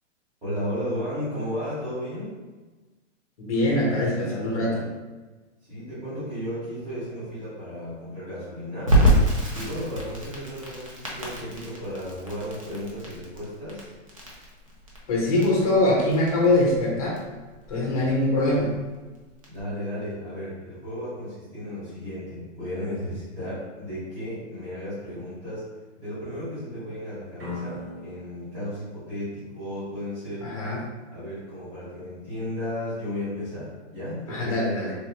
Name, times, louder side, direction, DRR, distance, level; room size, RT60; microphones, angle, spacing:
voice 1, 0.4-2.4 5.6-9.0 9.5-13.9 19.5-25.7 26.0-30.5 31.1-34.7, equal, 10° right, -15 dB, 1.4 m, -34 dB
voice 2, 3.4-4.8 15.1-17.2 17.7-18.7 30.4-30.8 34.3-34.9, left 1 dB, 30° left, -3 dB, 0.8 m, -23 dB
Crackle, 8.9-19.6, right 1 dB, 30° right, 0.4 m, -27 dB
sound 1, 27.4-30.3, left 2 dB, 55° right, 1.1 m, -41 dB
3.5 x 2.9 x 2.9 m, 1.2 s
hypercardioid pair, 175°, 37 cm